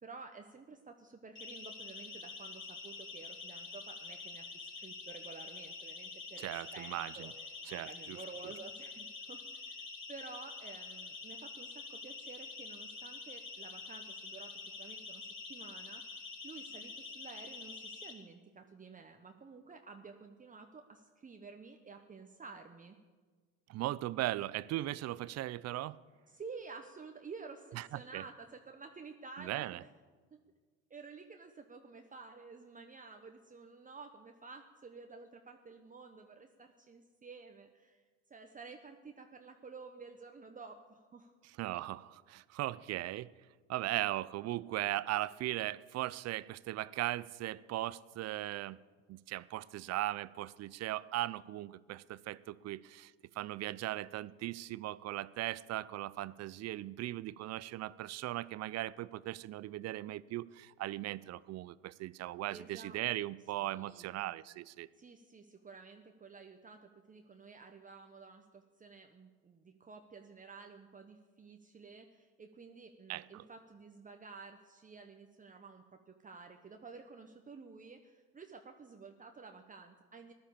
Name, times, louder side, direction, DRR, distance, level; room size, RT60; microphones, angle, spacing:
voice 1, 0.0-16.0 16.4-23.0 26.3-29.9 30.3-30.4 30.9-38.0 38.3-41.3 62.5-63.0 63.6-64.2 65.0-80.3, right 4 dB, 20° right, 1.1 m, -52 dB
Siren, 1.4-18.1, left 4 dB, 35° left, 3.3 m, -47 dB
voice 2, 6.4-7.3 7.7-8.2 23.7-26.0 27.8-27.9 28.1-28.2 29.4-29.8 41.6-43.3 43.7-48.8 49.1-64.9 73.1-73.4, right 15 dB, 45° right, 0.6 m, -38 dB
15.0 x 11.0 x 7.0 m
hypercardioid pair, 75°, 36 cm